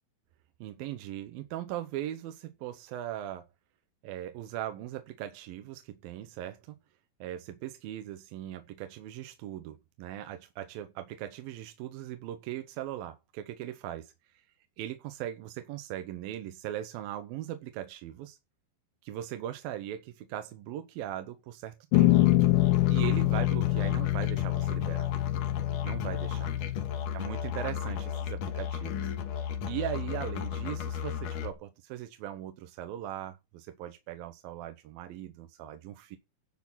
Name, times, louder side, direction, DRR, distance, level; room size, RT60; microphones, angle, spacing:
voice 1, 0.6-3.5 4.0-6.8 7.2-14.4 14.8-18.4 19.0-22.3 22.9-25.1 25.8-26.5 27.1-36.2, right 12 dB, 75° right, 2.6 m, -39 dB
sound 1, 21.9-26.9, left 17 dB, 85° left, 1.8 m, -26 dB
Musical instrument, 21.9-31.5, left 8 dB, 65° left, 2.6 m, -34 dB
10.5 x 6.4 x 5.6 m
omnidirectional pair, 4.5 m